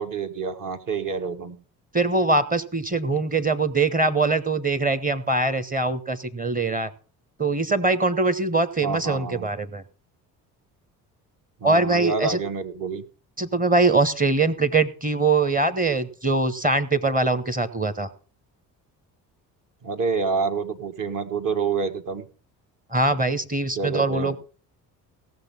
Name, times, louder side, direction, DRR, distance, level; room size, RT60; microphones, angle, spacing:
voice 1, 0.0-1.6 8.8-9.5 11.6-13.0 19.8-22.3 23.7-24.4, right 5 dB, 40° right, 6 dB, 1.6 m, -28 dB
voice 2, 1.9-6.9 7.4-9.8 11.6-12.4 13.4-18.1 22.9-24.4, right 3 dB, 15° right, 13 dB, 1.1 m, -22 dB
16.5 x 6.6 x 5.8 m, 0.39 s
figure-of-eight pair, 50°, 48 cm